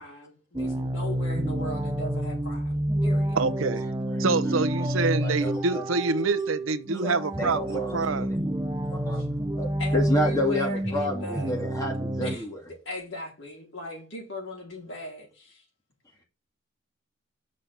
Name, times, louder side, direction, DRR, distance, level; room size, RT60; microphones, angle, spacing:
voice 1, 0.0-3.4 9.1-9.3 9.8-11.6 12.2-12.5 12.8-15.6, left 1 dB, 70° left, 4.4 m, -38 dB
sound 1, 0.5-12.4, right 1 dB, 15° right, 0.7 m, -28 dB
voice 2, 3.4-3.9 4.2-8.3, right 4 dB, 85° right, 0.8 m, -26 dB
voice 3, 4.8-5.8 6.9-8.3 8.9-12.6, equal, 15° left, 2.5 m, -31 dB
6.5 x 5.5 x 7.2 m
head